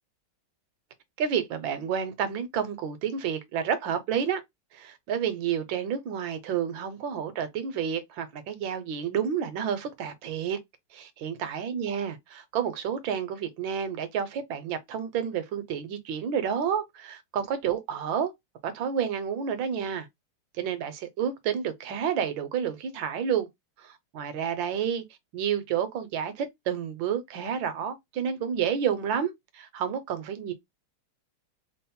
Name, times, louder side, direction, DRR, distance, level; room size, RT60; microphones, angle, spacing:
voice 1, 1.2-4.4 4.7-10.6 10.9-18.3 18.6-20.1 20.6-23.5 23.8-25.0 25.3-30.5, right 8 dB, 70° right, 1.3 m, -30 dB
3.7 x 2.0 x 4.2 m
omnidirectional pair, 2.4 m